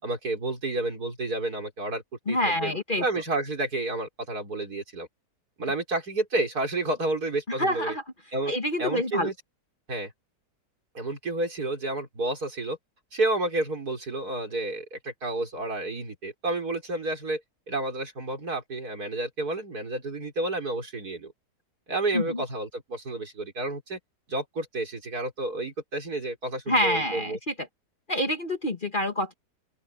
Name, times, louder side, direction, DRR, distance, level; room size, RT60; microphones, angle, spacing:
voice 1, 0.0-2.0 2.3-5.1 5.6-8.0 8.3-8.5 8.8-9.3 9.9-10.1 10.9-12.8 13.1-17.4 17.7-21.3 21.9-24.0 24.3-27.4, right 2 dB, 65° right, 5.1 m, -30 dB
voice 2, 2.3-3.0 7.5-8.0 8.5-9.3 22.1-22.4 26.7-27.5 28.1-29.3, left 1 dB, 30° left, 1.8 m, -27 dB
open air
omnidirectional pair, 1.8 m